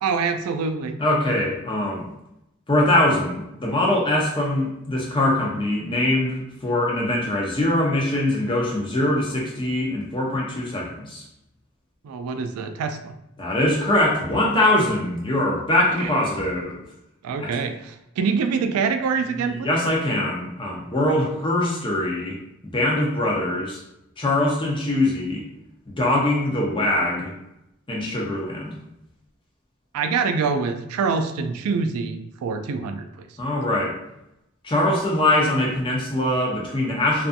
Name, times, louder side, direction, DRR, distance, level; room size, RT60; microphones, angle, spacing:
voice 1, 0.0-1.0 12.0-13.1 16.0-16.1 17.2-19.7 29.9-33.3, right 5 dB, 90° right, 7 dB, 0.3 m, -25 dB
voice 2, 1.0-2.1 2.7-11.2 13.4-16.8 17.4-17.6 19.6-22.4 22.7-23.8 24.2-25.4 25.9-27.3 27.9-28.7 33.4-34.0 34.6-37.3, left 1 dB, 20° left, -2 dB, 0.5 m, -22 dB
2.6 x 2.4 x 2.5 m, 0.85 s
head